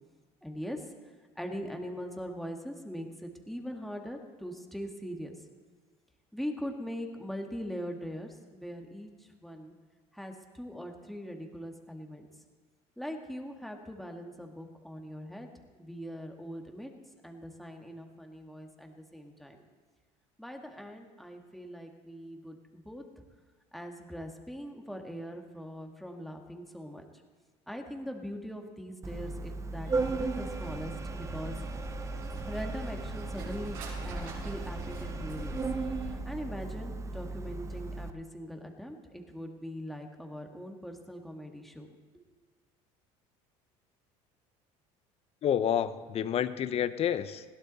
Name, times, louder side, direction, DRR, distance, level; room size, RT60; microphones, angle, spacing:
voice 1, 0.4-0.9 1.4-5.3 6.3-9.7 10.1-12.3 13.0-15.5 15.8-16.9 17.2-19.7 20.4-23.0 23.7-27.1 27.7-31.6 32.5-35.6 36.1-41.9, equal, ahead, 3 dB, 2.1 m, -41 dB
Organ, 29.0-38.1, right 3 dB, 20° right, 0.9 m, -36 dB
sound 1, 29.8-36.1, right 1 dB, 75° right, 7.0 m, -43 dB
voice 2, 45.4-47.4, left 9 dB, 45° left, 13 dB, 0.9 m, -29 dB
20.5 x 16.5 x 4.2 m, 1.4 s
supercardioid pair, 105°, 14 cm